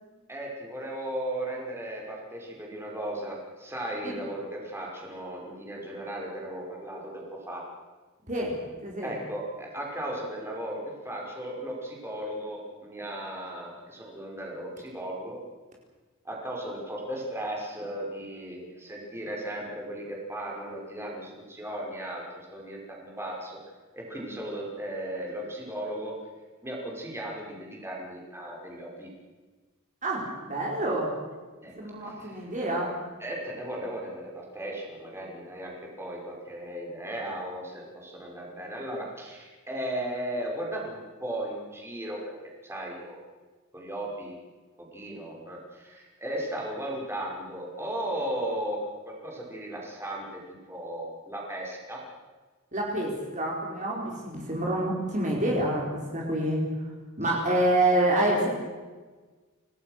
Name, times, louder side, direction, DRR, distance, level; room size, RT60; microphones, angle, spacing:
voice 1, 0.3-7.6 9.0-15.4 16.2-22.2 22.5-23.6 23.9-26.2 26.6-29.1 31.6-31.7 32.0-32.4 33.2-42.2 42.6-43.2 43.7-44.4 44.8-48.8 49.1-50.2 50.7-52.0 57.4-57.5, right 1 dB, 10° right, -2 dB, 5.6 m, -36 dB
voice 2, 8.8-9.1 30.0-31.1 31.8-32.9 52.7-55.9 56.1-56.9 57.2-58.5, right 1 dB, 35° right, -2 dB, 4.7 m, -27 dB
28.5 x 19.0 x 6.7 m, 1.4 s
head